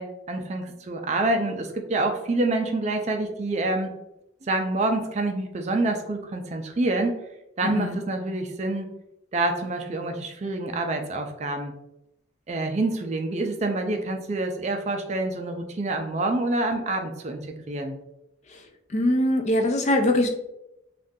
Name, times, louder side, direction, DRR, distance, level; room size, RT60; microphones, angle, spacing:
voice 1, 0.0-3.9 4.4-7.2 7.6-8.9 9.3-11.7 12.5-18.0, right 2 dB, 35° right, 4 dB, 0.4 m, -27 dB
voice 2, 7.6-8.0 18.9-20.3, left 1 dB, 35° left, 5 dB, 0.3 m, -22 dB
3.6 x 2.4 x 2.6 m, 0.86 s
head